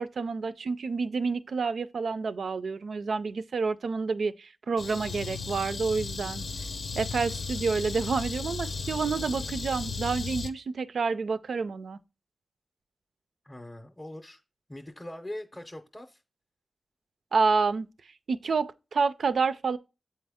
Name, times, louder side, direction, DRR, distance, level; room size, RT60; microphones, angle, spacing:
voice 1, 0.0-6.4 7.0-12.0 17.3-17.9 18.3-19.8, right 4 dB, 70° right, 0.4 m, -29 dB
sound 1, 4.8-10.5, left 4 dB, 75° left, 0.6 m, -35 dB
voice 2, 13.4-14.4 14.7-16.2, left 1 dB, 10° left, 0.6 m, -41 dB
8.0 x 4.3 x 3.5 m
wide cardioid pair, 160°, 0 cm